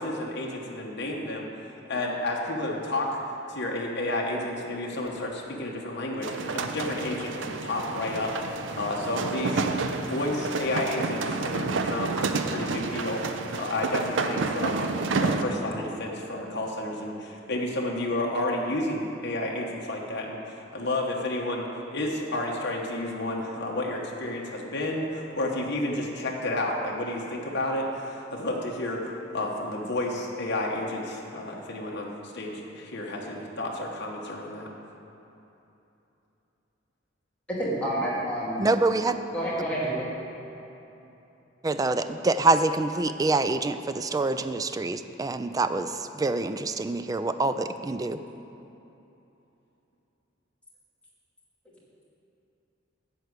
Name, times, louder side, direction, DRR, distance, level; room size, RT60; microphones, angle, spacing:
voice 1, 0.0-1.5 1.9-3.1 3.5-34.7, left 1 dB, 60° left, -2 dB, 1.1 m, -31 dB
sound 1, 6.2-15.4, right 3 dB, 70° right, 0.6 m, -30 dB
voice 2, 37.6-38.7 39.3-40.1, right 1 dB, 5° left, -8 dB, 2.6 m, -28 dB
voice 3, 38.6-39.2 41.6-48.2, right 3 dB, 20° right, 10 dB, 0.3 m, -26 dB
11.5 x 4.8 x 8.0 m, 3.0 s
head